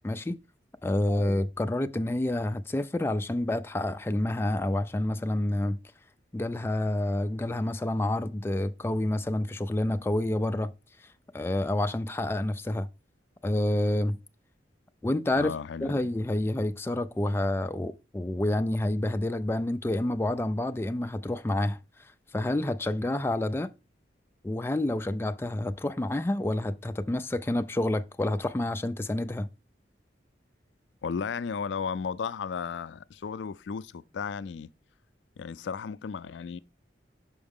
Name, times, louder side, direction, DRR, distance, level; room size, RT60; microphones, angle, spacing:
voice 1, 0.0-0.4 0.8-5.8 6.3-10.7 11.3-12.9 13.4-14.2 15.0-15.5 15.8-21.8 22.3-23.7 24.4-29.5, left 1 dB, 15° left, 0.3 m, -28 dB
voice 2, 15.4-16.0 31.0-34.7 35.4-36.6, left 6 dB, 80° left, 0.4 m, -34 dB
6.2 x 4.8 x 3.6 m
head